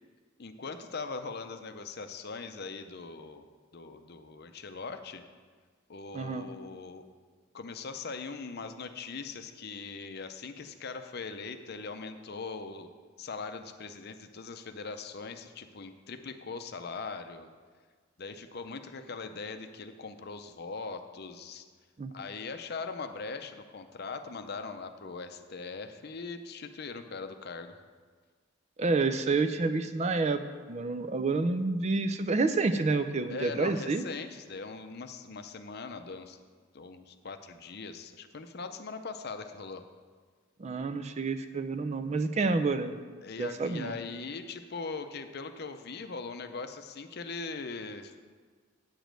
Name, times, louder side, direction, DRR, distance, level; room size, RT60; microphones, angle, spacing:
voice 1, 0.4-3.4 3.7-5.2 5.9-7.0 7.5-12.9 13.2-17.5 18.2-21.7 22.1-27.8 33.3-36.4 36.7-39.8 43.2-48.2, left 4 dB, 50° left, 8 dB, 0.6 m, -40 dB
voice 2, 6.1-6.5 22.0-22.1 28.8-30.4 30.7-34.0 40.6-42.9 43.4-44.0, right 3 dB, 30° right, 10 dB, 0.4 m, -29 dB
9.0 x 5.1 x 7.5 m, 1.5 s
head